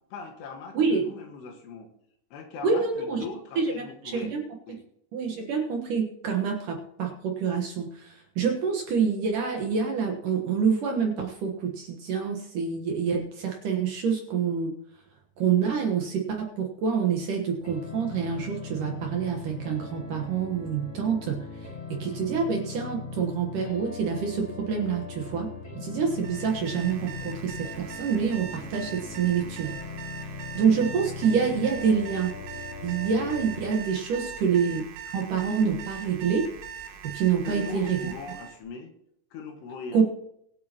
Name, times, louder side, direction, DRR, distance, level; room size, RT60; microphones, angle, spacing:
voice 1, 0.1-1.9 2.3-4.3 4.7-4.8 34.1-34.3 37.4-38.9 39.3-40.0, left 4 dB, 75° left, 4 dB, 3.6 m, -40 dB
voice 2, 0.7-1.1 2.6-3.2 3.6-4.5 5.1-14.7 15.4-21.5 21.9-25.5 25.8-29.8 30.5-32.3 32.8-34.9 35.1-36.5 37.0-38.0 39.9-40.0, right 6 dB, 60° right, 2 dB, 2.4 m, -27 dB
sound 1, 17.6-33.6, left 4 dB, 35° left, 3.1 m, -40 dB
Alarm, 26.1-38.6, right 7 dB, 80° right, 3.6 m, -41 dB
23.5 x 8.4 x 3.0 m, 0.74 s
omnidirectional pair, 5.0 m